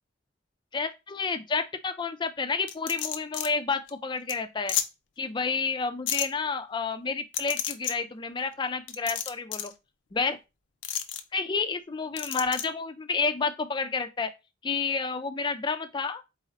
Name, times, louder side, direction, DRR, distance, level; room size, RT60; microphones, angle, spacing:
voice 1, 0.7-4.8 5.2-9.7 10.1-10.4 11.3-14.3 14.6-16.2, left 4 dB, 25° left, 0.4 m, -30 dB
sound 1, 2.7-3.5 3.9-4.0 4.3-4.4 4.7-4.9 6.1-6.3 7.3-7.9 8.9-9.7 10.8-11.2 12.2-12.6, left 10 dB, 75° left, 0.5 m, -30 dB
4.0 x 2.5 x 4.0 m
head